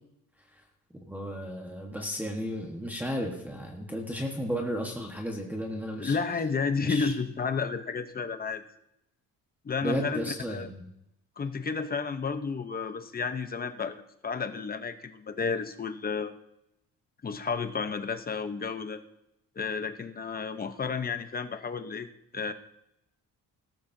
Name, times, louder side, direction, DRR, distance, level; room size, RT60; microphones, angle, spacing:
voice 1, 1.1-6.2 6.8-7.1 9.8-10.9, equal, 5° right, -1 dB, 1.3 m, -34 dB
voice 2, 6.0-8.6 9.6-10.7 11.4-14.0 14.2-16.3 17.2-19.0 19.6-22.1 22.3-22.5, left 5 dB, 25° left, 9 dB, 0.8 m, -31 dB
17.0 x 13.0 x 2.7 m, 0.82 s
cardioid pair, 150°, 35 cm